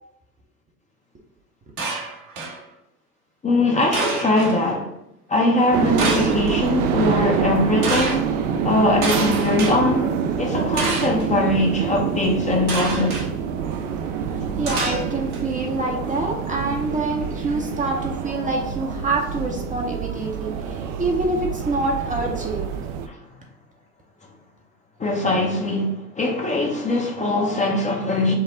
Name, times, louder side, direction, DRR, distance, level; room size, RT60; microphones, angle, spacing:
sound 1, 1.8-2.6 3.9-4.6 6.0-6.5 7.8-8.2 9.0-9.7 10.8-11.3 12.7-13.3 14.7-15.4, right 3 dB, 75° right, 1.4 m, -27 dB
voice 1, 3.4-4.9 5.3-8.3 8.6-10.1 10.4-13.3 23.1-23.2 25.0-28.3, left 2 dB, 15° left, 0.7 m, -21 dB
sound 2, 5.7-23.1, right 7 dB, 50° right, 0.6 m, -26 dB
voice 2, 14.3-22.7, right 2 dB, 15° right, 0.7 m, -26 dB
5.5 x 2.1 x 3.8 m
hypercardioid pair, 80°, 45 cm